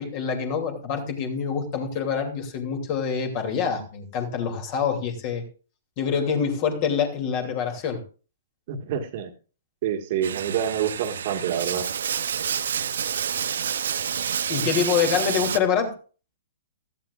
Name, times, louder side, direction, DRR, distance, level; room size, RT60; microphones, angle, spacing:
voice 1, 0.0-5.4 6.0-8.0 14.5-15.9, left 6 dB, 40° left, 4 dB, 2.8 m, -26 dB
voice 2, 8.7-9.3 9.8-11.9, right 9 dB, 45° right, 5 dB, 1.7 m, -27 dB
Bathtub (filling or washing), 10.2-15.6, right 8 dB, 65° right, 0.7 m, -28 dB
16.0 x 13.5 x 2.5 m, 0.37 s
figure-of-eight pair, 120°, 0 cm